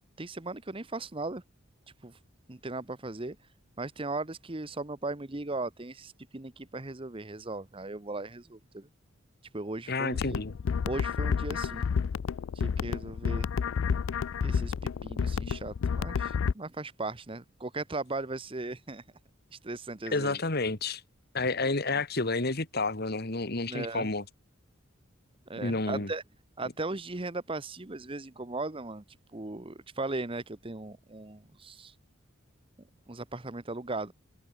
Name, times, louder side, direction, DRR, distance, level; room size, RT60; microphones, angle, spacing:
voice 1, 0.2-1.4 2.0-2.2 2.5-3.4 3.8-8.9 9.5-10.4 10.8-11.9 12.5-13.5 14.4-14.7 15.0-19.0 19.5-20.4 23.7-24.1 25.5-26.2 26.6-29.0 29.3-31.9 33.1-34.1, right 2 dB, 25° right, 1.1 m, -37 dB
voice 2, 9.9-10.5 20.1-21.0 21.3-24.2 25.6-26.1, left 3 dB, 50° left, 2.0 m, -30 dB
sound 1, 10.1-16.5, left 6 dB, 80° left, 0.4 m, -30 dB
head